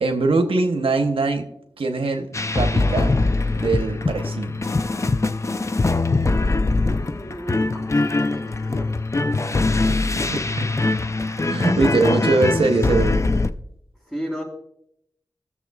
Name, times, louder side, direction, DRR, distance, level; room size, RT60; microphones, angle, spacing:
voice 1, 0.0-1.5 1.8-4.6 10.3-10.7 11.5-13.3, right 3 dB, 85° right, 4 dB, 0.9 m, -22 dB
sound 1, 2.3-13.5, left 3 dB, 30° left, 0.5 m, -22 dB
voice 2, 6.8-9.0 14.0-14.4, equal, 5° left, -3 dB, 3.8 m, -34 dB
17.0 x 6.9 x 2.3 m, 0.74 s
wide cardioid pair, 65°, 9 cm